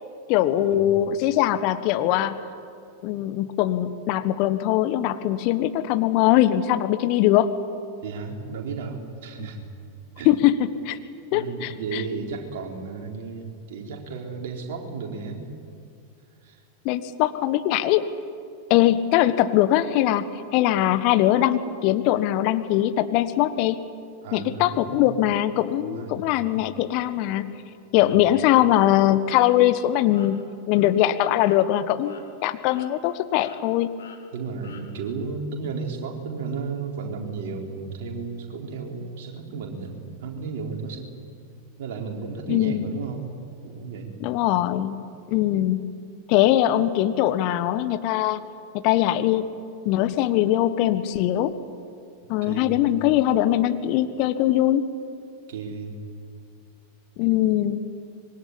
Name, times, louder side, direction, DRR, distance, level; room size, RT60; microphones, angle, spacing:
voice 1, 0.3-2.4 3.0-7.5 9.4-9.5 10.2-11.0 11.3-12.0 16.8-18.0 18.7-20.3 20.5-23.8 24.3-27.6 27.9-30.4 30.7-32.1 32.4-33.9 42.5-43.0 44.2-45.9 46.3-48.4 48.8-49.5 49.8-51.5 52.3-54.9 57.2-57.8, left 13 dB, 45° left, 12 dB, 1.3 m, -21 dB
voice 2, 8.0-9.7 10.2-10.3 11.3-15.5 16.4-16.6 24.2-25.2 25.8-26.2 28.0-28.1 34.3-41.1 41.8-43.3 43.6-44.2 52.4-52.9 55.5-56.0, right 4 dB, 55° right, 2 dB, 4.4 m, -34 dB
sound 1, 28.8-28.9 29.4-29.6 30.1-30.3 30.7-30.9 31.4-31.6 32.0-32.2 32.7-33.1 33.4-33.6 34.0-34.2 34.6-34.8, left 7 dB, 60° left, 3.4 m, -48 dB
25.5 x 22.5 x 10.0 m, 2.4 s
figure-of-eight pair, 90°, 0 cm